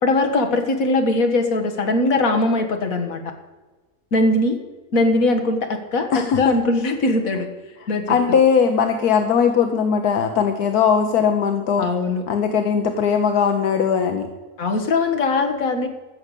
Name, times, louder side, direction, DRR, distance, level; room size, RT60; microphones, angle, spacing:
voice 1, 0.0-3.2 4.1-4.6 4.9-7.5 7.9-8.2 11.8-12.2 14.6-15.9, left 2 dB, 65° left, 5 dB, 1.9 m, -20 dB
voice 2, 6.1-6.6 7.8-11.9 12.3-14.3, left 7 dB, 80° left, 6 dB, 1.4 m, -19 dB
14.0 x 6.7 x 8.2 m, 1.3 s
omnidirectional pair, 1.6 m